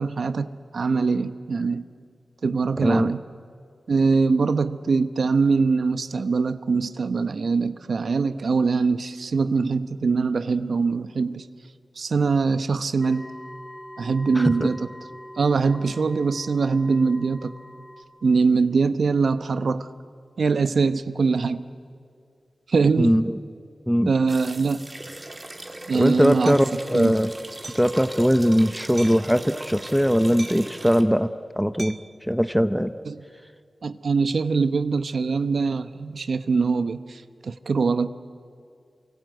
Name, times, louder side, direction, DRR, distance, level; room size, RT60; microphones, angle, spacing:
voice 1, 0.0-1.8 2.4-3.2 3.9-11.4 12.0-13.3 14.0-14.9 15.4-17.5 18.2-19.9 20.4-21.6 22.7-23.1 24.0-24.9 25.9-26.6 26.9-27.1 33.1-33.2 33.8-38.1, right 4 dB, 75° right, 12 dB, 1.0 m, -23 dB
voice 2, 2.8-3.1 14.4-14.7 23.0-23.4 23.9-24.1 25.9-27.3 27.8-31.3 31.6-32.0 32.3-32.9, equal, ahead, 11 dB, 0.8 m, -20 dB
sound 1, 13.0-18.0, left 1 dB, 30° left, 2.5 m, -43 dB
sound 2, 24.3-31.0, right 1 dB, 25° right, 2.3 m, -39 dB
Hammer, 26.4-26.7 27.6-27.9 29.0-29.3 30.4-30.8 31.8-32.2, right 3 dB, 50° right, 0.7 m, -40 dB
28.5 x 24.5 x 8.0 m, 2.3 s
wide cardioid pair, 75°, 0 cm